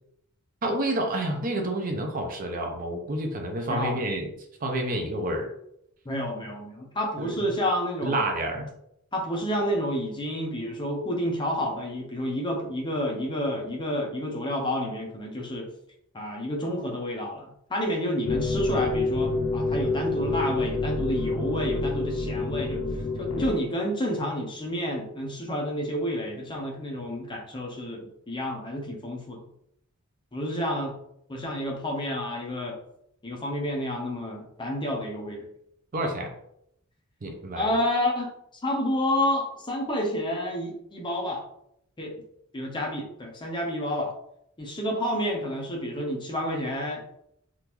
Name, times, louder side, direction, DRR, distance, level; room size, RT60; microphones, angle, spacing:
voice 1, 0.6-4.3 4.6-5.5 7.2-7.5 8.0-8.7 35.9-36.3 37.2-37.7, right 1 dB, 40° right, 3 dB, 0.5 m, -29 dB
voice 2, 3.7-4.0 6.0-8.3 9.1-15.7 16.1-22.8 23.2-29.5 30.3-31.0 31.3-32.8 33.2-35.5 37.5-38.3 38.6-41.4 42.0-42.2 42.5-44.1 44.6-47.0, equal, 20° left, 0 dB, 0.6 m, -29 dB
sound 1, 18.2-23.5, left 3 dB, 70° left, 0.5 m, -27 dB
3.6 x 2.5 x 2.9 m, 0.74 s
head